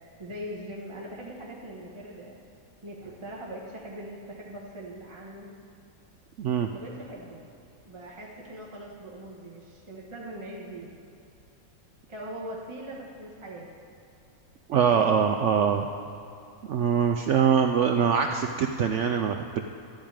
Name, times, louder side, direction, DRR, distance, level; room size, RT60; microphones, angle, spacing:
voice 1, 0.2-2.4 2.8-5.5 6.7-7.5 7.8-10.9 12.1-13.7 14.9-15.1, right 1 dB, 20° right, -3 dB, 1.2 m, -41 dB
voice 2, 6.4-6.7 14.7-15.9 16.7-19.6, right 7 dB, 70° right, 5 dB, 0.7 m, -23 dB
13.0 x 5.0 x 8.9 m, 2.7 s
omnidirectional pair, 1.7 m